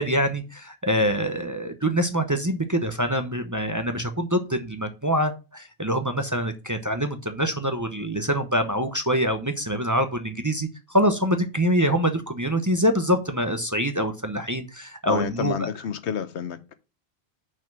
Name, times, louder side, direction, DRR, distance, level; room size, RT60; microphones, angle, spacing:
voice 1, 0.0-15.7, equal, 20° right, 0.7 m, -25 dB
voice 2, 15.0-16.8, left 8 dB, 85° left, 1.1 m, -29 dB
5.8 x 5.1 x 6.0 m
omnidirectional pair, 1.1 m